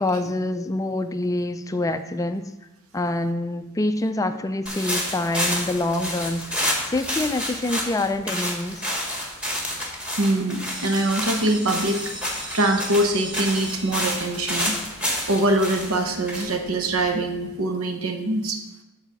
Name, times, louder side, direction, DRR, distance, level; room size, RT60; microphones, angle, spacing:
voice 1, 0.0-2.4 2.9-6.5 6.9-8.8, left 2 dB, 15° left, 9 dB, 0.3 m, -26 dB
sound 1, 4.7-17.4, equal, 5° right, 1.4 m, -29 dB
voice 2, 10.2-12.1 12.5-14.8 15.3-18.6, right 1 dB, 75° right, 5 dB, 0.9 m, -23 dB
sound 2, 10.7-16.3, right 1 dB, 20° right, 1.6 m, -40 dB
8.3 x 4.1 x 6.8 m, 0.97 s
head